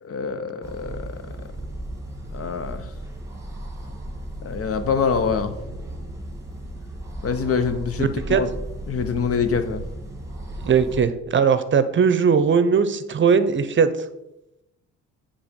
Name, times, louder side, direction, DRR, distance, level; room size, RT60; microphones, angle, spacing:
voice 1, 0.0-1.0 2.3-2.9 4.4-5.5 7.2-8.5 8.9-9.8, left 6 dB, 50° left, 10 dB, 0.9 m, -25 dB
sound 1, 0.6-11.1, right 1 dB, 10° right, 1.8 m, -35 dB
voice 2, 8.0-8.4 10.6-13.9, right 6 dB, 40° right, 12 dB, 0.7 m, -19 dB
9.5 x 3.6 x 5.2 m, 0.90 s
cardioid pair, 90°, 30 cm